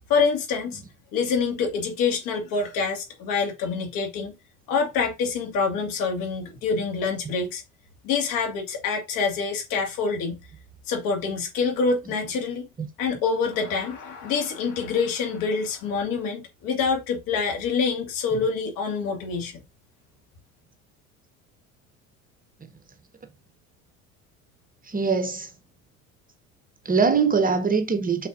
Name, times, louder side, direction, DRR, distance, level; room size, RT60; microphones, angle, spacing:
voice 1, 0.1-0.8 1.1-4.3 4.7-7.6 8.0-10.4 10.9-12.7 13.0-19.6, left 5 dB, 50° left, 2.3 m, -26 dB
voice 2, 24.8-25.5 26.8-28.3, right 5 dB, 20° right, 1.0 m, -22 dB
6.4 x 6.2 x 2.7 m
figure-of-eight pair, 65°, 43 cm